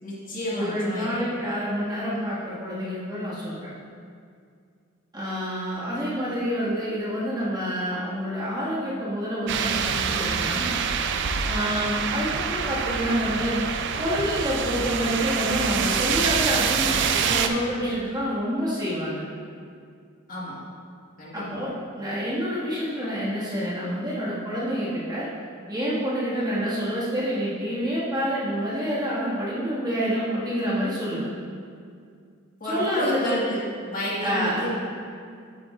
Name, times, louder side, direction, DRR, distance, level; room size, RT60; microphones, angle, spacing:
voice 1, 0.0-1.2 20.3-20.6 21.2-21.6 32.6-34.7, equal, 45° left, -7 dB, 1.8 m, -31 dB
voice 2, 0.5-3.7 5.1-10.7 11.5-13.6 14.0-19.2 21.3-25.3 25.7-31.3 32.6-33.5 34.2-34.6, equal, 20° right, -9 dB, 2.0 m, -27 dB
sound 1, 9.5-17.5, right 6 dB, 60° right, 0.4 m, -26 dB
9.0 x 8.3 x 2.5 m, 2.2 s
head